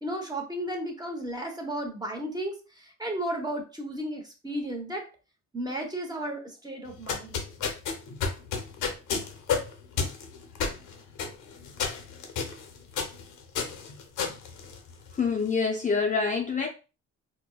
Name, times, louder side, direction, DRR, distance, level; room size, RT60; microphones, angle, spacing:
voice 1, 0.0-5.1 5.5-7.4, right 1 dB, 15° right, 0.9 m, -34 dB
sound 1, 6.9-15.3, left 5 dB, 90° left, 0.8 m, -32 dB
voice 2, 15.1-16.7, left 5 dB, 25° left, 0.5 m, -26 dB
4.3 x 2.1 x 2.3 m
cardioid pair, 90°, 30 cm